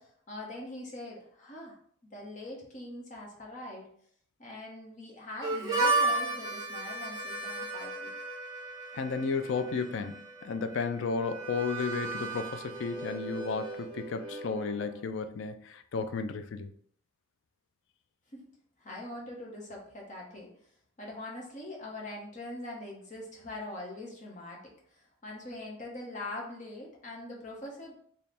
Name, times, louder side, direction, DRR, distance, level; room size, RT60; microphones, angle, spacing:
voice 1, 0.0-1.8 2.0-3.9 4.4-8.1 18.3-18.4 18.8-20.5 21.0-27.9, left 1 dB, 35° left, 0.9 m, -43 dB
Harmonica, 5.4-15.0, right 2 dB, 20° right, 0.8 m, -34 dB
voice 2, 8.9-16.7, left 4 dB, 70° left, 0.4 m, -33 dB
3.3 x 2.3 x 4.1 m
head